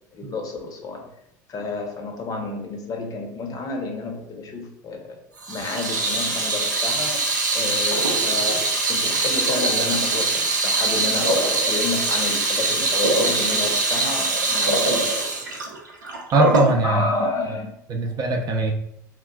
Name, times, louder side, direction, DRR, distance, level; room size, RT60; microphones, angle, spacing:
voice 1, 0.1-1.1 1.5-5.2 5.5-7.2 7.5-15.3 16.8-17.7 18.0-18.1, left 3 dB, 40° left, 3 dB, 0.7 m, -30 dB
Water tap faucet / Sink (filling or washing), 5.4-16.7, right 2 dB, 90° right, 0.4 m, -22 dB
voice 2, 16.3-17.0 17.9-18.7, right 2 dB, 40° right, 3 dB, 0.6 m, -20 dB
3.6 x 2.4 x 2.3 m, 0.79 s
hypercardioid pair, 70°, 10 cm